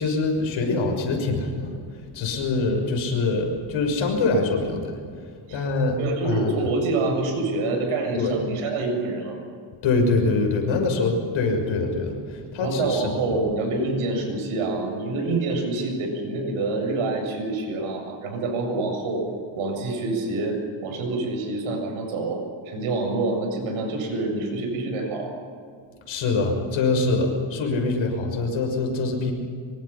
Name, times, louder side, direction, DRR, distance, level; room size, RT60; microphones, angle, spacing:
voice 1, 0.0-1.7 2.1-4.9 5.5-6.0 6.2-6.7 8.2-8.3 9.8-13.4 26.1-29.3, left 3 dB, 70° left, 3 dB, 6.3 m, -24 dB
voice 2, 6.0-9.4 12.6-19.2 19.5-25.3, right 3 dB, 85° right, 3 dB, 7.8 m, -26 dB
25.5 x 24.0 x 5.9 m, 2.2 s
cardioid pair, 140°, 49 cm